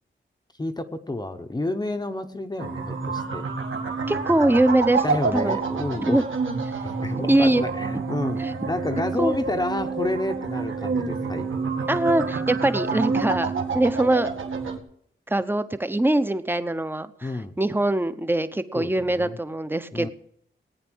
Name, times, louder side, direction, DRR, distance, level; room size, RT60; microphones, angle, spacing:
voice 1, 0.6-3.4 5.0-6.2 6.8-11.5 17.2-17.5 18.7-19.4 19.9-20.1, left 2 dB, 20° left, 5 dB, 0.8 m, -30 dB
sound 1, 2.6-14.8, right 4 dB, 75° right, 2.1 m, -28 dB
voice 2, 4.1-5.0 5.3-5.6 6.1-6.2 7.3-7.7 8.4-8.5 9.2-9.3 11.9-14.3 15.3-17.3 17.6-20.1, right 1 dB, 10° right, 12 dB, 0.7 m, -22 dB
18.0 x 9.5 x 6.2 m, 0.67 s
wide cardioid pair, 160°, 21 cm